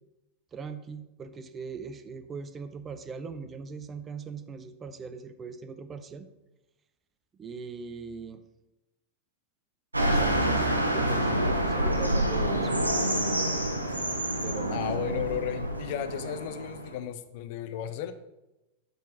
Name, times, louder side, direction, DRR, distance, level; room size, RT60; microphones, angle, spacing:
voice 1, 0.5-6.3 7.4-8.4 10.0-12.7 14.4-14.8, right 5 dB, 20° right, 10 dB, 0.7 m, -40 dB
sound 1, 9.9-17.0, right 1 dB, 80° right, 0.9 m, -27 dB
voice 2, 14.7-18.1, left 9 dB, 50° left, 9 dB, 0.6 m, -34 dB
8.2 x 4.1 x 4.8 m, 0.98 s
figure-of-eight pair, 90°, 0 cm